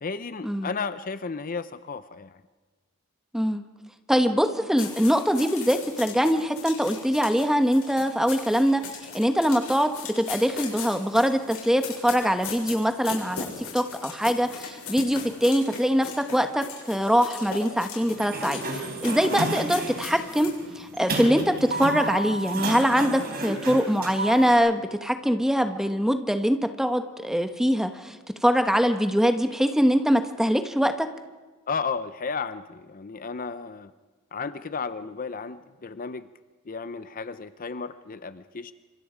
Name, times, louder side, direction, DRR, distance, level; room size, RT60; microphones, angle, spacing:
voice 1, 0.0-2.4 31.7-33.9 34.3-36.3 36.7-38.7, left 5 dB, 40° left, 12 dB, 0.6 m, -33 dB
voice 2, 4.1-8.8 9.1-9.9 10.2-18.6 19.0-28.2 28.4-31.1, equal, ahead, 7 dB, 1.2 m, -23 dB
sound 1, 4.8-20.6, left 6 dB, 75° left, 7.0 m, -38 dB
Sliding door, 18.0-24.5, right 2 dB, 45° right, 3.7 m, -32 dB
27.0 x 26.0 x 5.1 m, 1.3 s
head